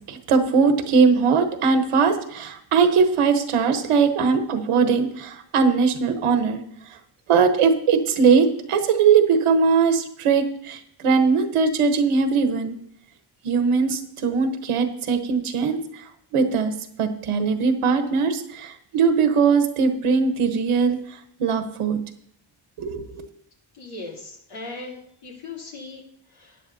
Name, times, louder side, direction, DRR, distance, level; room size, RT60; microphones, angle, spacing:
voice 1, 0.1-6.6 7.3-12.8 13.4-16.0 16.3-22.0 22.8-23.2, right 5 dB, 90° right, 7 dB, 1.2 m, -20 dB
voice 2, 23.7-26.6, left 3 dB, 85° left, -4 dB, 3.3 m, -39 dB
13.0 x 9.4 x 2.8 m, 0.67 s
cardioid pair, 80°, 50 cm